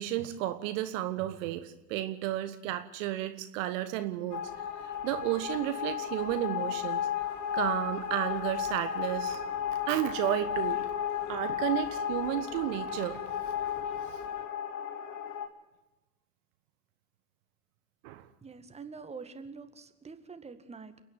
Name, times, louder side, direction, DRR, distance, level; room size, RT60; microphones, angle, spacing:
voice 1, 0.0-4.4 5.0-7.1 7.5-9.4 9.9-10.9 11.3-13.2 18.0-18.2, right 13 dB, 50° right, 10 dB, 1.5 m, -32 dB
sound 1, 4.3-15.5, left 9 dB, 40° left, 2.8 m, -34 dB
voice 2, 18.4-21.0, right 5 dB, 15° right, 8 dB, 1.9 m, -45 dB
29.5 x 10.5 x 9.6 m, 1.0 s
figure-of-eight pair, 80°, 47 cm